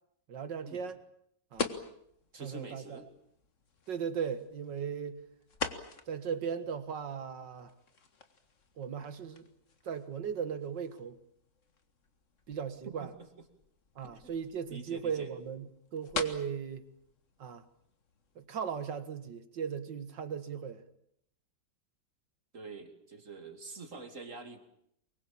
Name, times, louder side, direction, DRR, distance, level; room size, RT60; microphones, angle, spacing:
voice 1, 0.3-1.0 1.5-1.7 2.4-2.8 3.9-5.2 6.1-7.7 8.8-9.5 9.8-11.2 12.5-13.1 14.0-16.9 17.4-17.6 18.4-20.8, right 7 dB, 75° right, 2.4 m, -37 dB
sound 1, 1.5-18.5, left 4 dB, 45° left, 2.0 m, -45 dB
voice 2, 2.3-3.1 12.9-13.1 14.0-14.3 14.7-15.3 22.5-24.6, right 3 dB, 45° right, 2.9 m, -46 dB
24.5 x 22.5 x 8.7 m
omnidirectional pair, 1.9 m